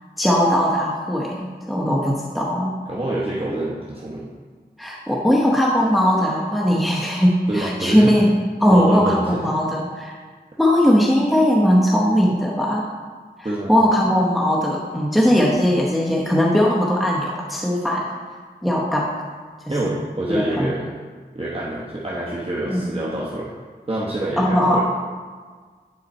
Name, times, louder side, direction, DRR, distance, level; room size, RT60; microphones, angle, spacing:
voice 1, 0.2-2.7 4.8-10.2 10.6-12.9 13.4-18.1 18.6-19.2 19.7-19.9 20.3-20.7 22.7-22.9 24.4-24.8, equal, ahead, -4 dB, 0.9 m, -19 dB
voice 2, 2.9-4.3 7.5-8.1 8.7-9.5 13.4-13.7 19.7-20.9 21.3-23.5 23.9-24.8, right 1 dB, 35° right, -6 dB, 1.0 m, -26 dB
9.6 x 4.0 x 4.2 m, 1.6 s
wide cardioid pair, 55°, 17 cm